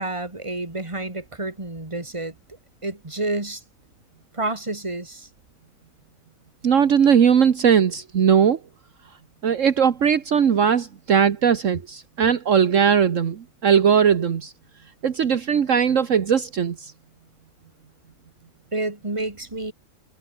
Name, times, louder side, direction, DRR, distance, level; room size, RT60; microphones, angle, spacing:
voice 1, 0.0-2.3 2.8-3.6 4.3-5.3 18.7-19.7, right 2 dB, 20° right, 2.9 m, -29 dB
voice 2, 6.6-8.6 9.4-14.5 15.0-16.9, right 7 dB, 65° right, 1.5 m, -19 dB
omnidirectional pair, 1.4 m